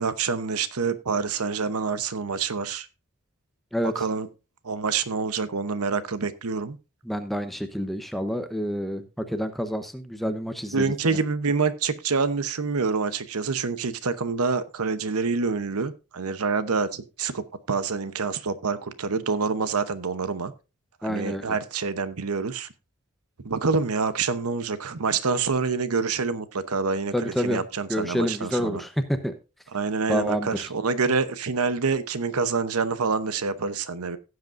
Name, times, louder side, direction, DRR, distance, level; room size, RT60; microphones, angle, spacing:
voice 1, 0.0-2.9 3.8-4.3 4.6-6.8 10.7-20.5 21.0-22.7 23.4-28.8 29.7-34.2, right 4 dB, 90° right, 13 dB, 0.8 m, -27 dB
voice 2, 7.0-10.9 21.0-21.6 27.1-27.6 27.9-29.3 30.1-30.7, equal, ahead, 8 dB, 0.8 m, -28 dB
16.5 x 7.9 x 2.5 m, 0.29 s
head